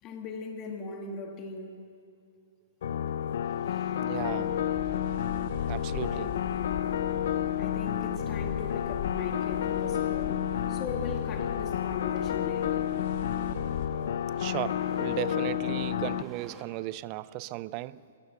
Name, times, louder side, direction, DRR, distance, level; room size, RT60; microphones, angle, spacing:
voice 1, 0.0-1.8 3.7-3.9 6.0-6.7 7.6-12.9 17.9-18.0, left 4 dB, 30° left, 2.1 m, -40 dB
sound 1, 2.8-16.2, left 10 dB, 65° left, 0.7 m, -30 dB
Engine starting, 3.4-16.6, right 3 dB, 15° right, 2.0 m, -52 dB
voice 2, 4.0-4.6 5.7-6.3 14.4-18.0, right 18 dB, 35° right, 0.4 m, -36 dB
sound 2, 4.2-13.9, left 8 dB, 50° left, 2.1 m, -41 dB
27.0 x 14.0 x 7.1 m
hypercardioid pair, 145°, 0 cm